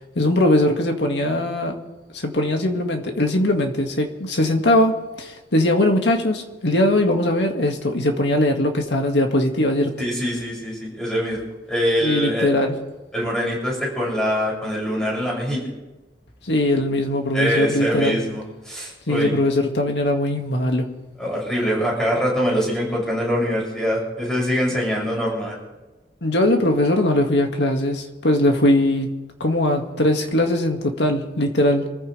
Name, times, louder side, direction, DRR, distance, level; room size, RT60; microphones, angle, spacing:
voice 1, 0.2-1.8 2.1-9.9 12.0-12.7 16.4-18.2 19.1-20.9 26.2-29.1 29.4-31.9, left 1 dB, 85° left, 3 dB, 2.0 m, -20 dB
voice 2, 10.0-11.4 11.7-12.5 13.1-15.7 17.3-19.4 21.2-25.6, equal, 5° left, -4 dB, 7.0 m, -23 dB
27.0 x 15.0 x 3.4 m, 1.1 s
head